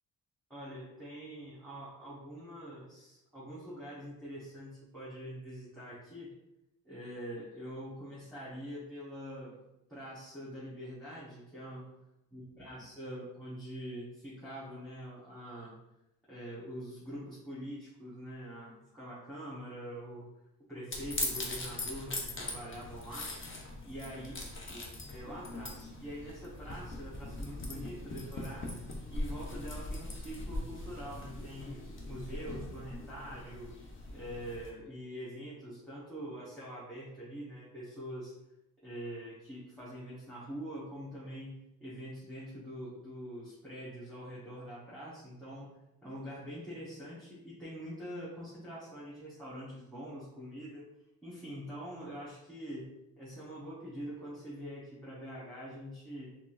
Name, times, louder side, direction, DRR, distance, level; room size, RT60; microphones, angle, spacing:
voice 1, 0.5-6.3 6.8-9.6 9.9-11.9 12.3-15.8 16.3-20.3 20.7-23.4 23.8-24.3 24.7-28.8 29.1-31.8 32.0-33.8 34.1-38.3 38.8-50.8 51.2-56.3, equal, ahead, -9 dB, 1.3 m, -44 dB
sound 1, 20.9-34.7, left 2 dB, 35° left, 0.8 m, -41 dB
4.2 x 3.2 x 2.6 m, 0.88 s
cardioid pair, 110°, 34 cm